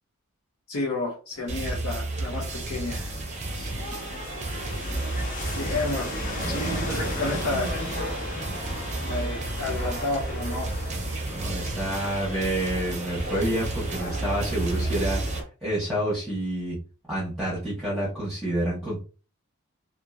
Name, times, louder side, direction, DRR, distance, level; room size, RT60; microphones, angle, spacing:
voice 1, 0.7-3.1 5.5-6.1 6.5-7.8 9.0-10.7, left 2 dB, 85° left, -4 dB, 0.9 m, -31 dB
sound 1, 1.3-15.4, left 1 dB, 40° left, 0.9 m, -35 dB
sound 2, 1.5-15.4, right 2 dB, 35° right, 0.5 m, -32 dB
voice 2, 6.4-7.2 11.3-15.2 15.6-16.8 17.1-19.0, right 1 dB, ahead, -9 dB, 1.1 m, -29 dB
2.9 x 2.5 x 2.4 m, 0.35 s
head